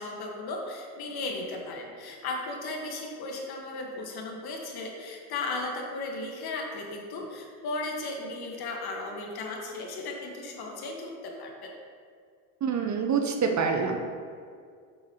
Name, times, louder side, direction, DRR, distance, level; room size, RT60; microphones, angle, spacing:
voice 1, 0.0-11.7, left 2 dB, 55° left, 1 dB, 1.5 m, -36 dB
voice 2, 12.6-14.0, right 6 dB, 40° right, 4 dB, 0.8 m, -26 dB
7.7 x 6.3 x 3.0 m, 2.2 s
supercardioid pair, 75°, 44 cm